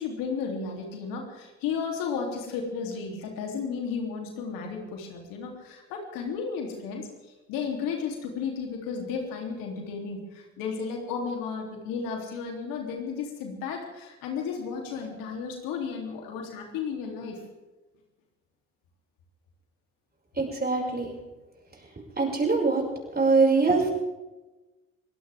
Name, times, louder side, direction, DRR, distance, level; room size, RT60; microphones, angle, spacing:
voice 1, 0.0-17.4, left 5 dB, 75° left, 1 dB, 3.5 m, -33 dB
voice 2, 20.4-21.1 22.2-22.8 23.1-23.9, right 4 dB, 25° right, 0 dB, 6.5 m, -23 dB
22.5 x 17.0 x 3.7 m, 1.1 s
hypercardioid pair, 55°, 34 cm